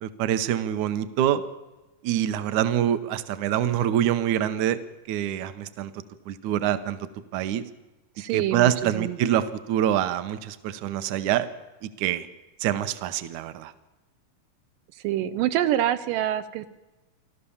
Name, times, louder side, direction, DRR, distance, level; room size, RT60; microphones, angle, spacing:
voice 1, 0.0-1.4 2.0-4.8 5.1-5.9 6.3-7.0 7.3-7.6 8.3-11.5 11.8-12.3 12.6-13.7, right 11 dB, 70° right, 12 dB, 2.2 m, -25 dB
voice 2, 8.2-9.2 15.0-16.7, right 12 dB, 90° right, 11 dB, 2.5 m, -26 dB
28.5 x 12.5 x 7.1 m, 1.1 s
omnidirectional pair, 3.8 m